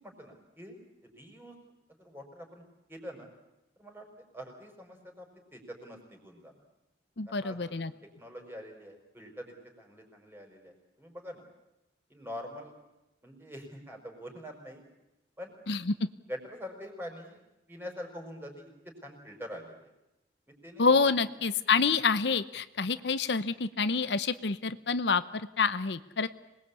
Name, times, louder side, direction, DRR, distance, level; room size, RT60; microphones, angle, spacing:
voice 1, 0.0-1.6 2.0-3.3 3.8-4.1 4.3-6.6 7.3-7.9 8.2-11.4 12.1-12.7 13.2-14.8 15.4-15.6 16.3-17.4 17.7-19.8 20.5-20.9 22.9-23.1, equal, 10° right, 3 dB, 5.3 m, -45 dB
voice 2, 7.2-7.9 15.7-15.9 20.8-26.3, left 4 dB, 75° left, 13 dB, 0.9 m, -27 dB
26.0 x 20.0 x 8.5 m, 0.97 s
head